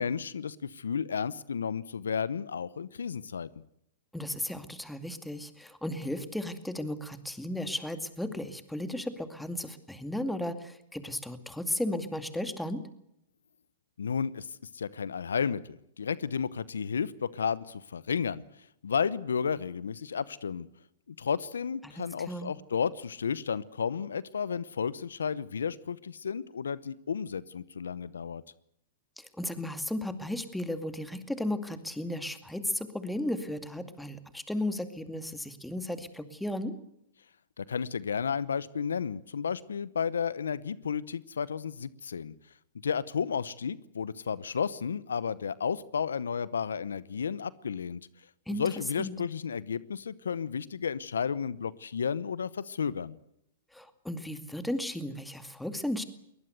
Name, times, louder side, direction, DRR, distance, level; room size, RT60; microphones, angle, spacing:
voice 1, 0.0-3.5 14.0-14.5 14.7-18.4 18.8-20.7 21.2-28.4 37.6-42.3 42.8-48.0 48.5-53.2, left 6 dB, 80° left, 19 dB, 0.9 m, -32 dB
voice 2, 4.1-12.8 21.8-22.5 29.2-36.7 48.5-48.7 49.0-49.1 53.7-56.0, left 1 dB, 5° left, 9 dB, 2.3 m, -35 dB
22.0 x 19.5 x 8.1 m, 0.78 s
hypercardioid pair, 115°, 0 cm